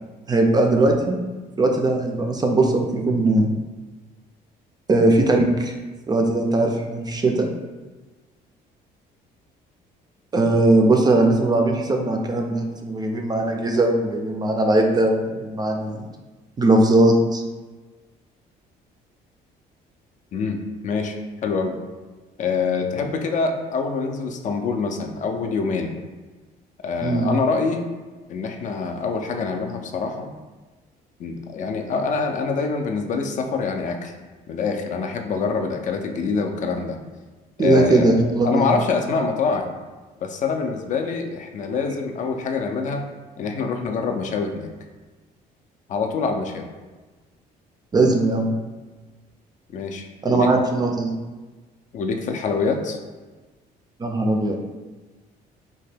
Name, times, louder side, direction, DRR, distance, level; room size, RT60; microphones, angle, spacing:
voice 1, 0.3-1.2 1.6-3.5 4.9-5.7 6.1-7.5 10.3-16.0 16.6-17.4 27.0-27.3 37.6-38.7 47.9-48.5 50.2-51.2 54.0-54.6, right 2 dB, 25° right, 2 dB, 0.3 m, -19 dB
voice 2, 20.3-21.2 21.4-21.7 22.4-25.9 26.8-27.8 28.3-30.3 31.2-34.1 34.5-37.0 37.6-39.7 40.2-43.0 43.4-44.7 45.9-46.7 49.7-50.5 51.9-53.0, left 4 dB, 50° left, 5 dB, 0.4 m, -25 dB
2.8 x 2.2 x 3.3 m, 1.3 s
cardioid pair, 110°, 17 cm